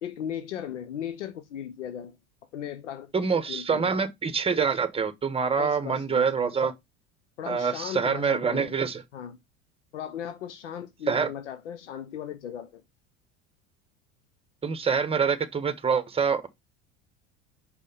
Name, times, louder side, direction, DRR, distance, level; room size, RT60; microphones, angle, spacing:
voice 1, 0.0-2.2 2.5-4.0 5.6-6.6 7.4-8.7 9.1-9.4 9.9-12.8, left 9 dB, 90° left, 0.7 m, -37 dB
voice 2, 3.1-6.7 7.5-9.0 11.1-11.3 14.6-16.5, right 6 dB, 15° right, 1.0 m, -26 dB
5.4 x 4.2 x 5.3 m
hypercardioid pair, 85°, 35 cm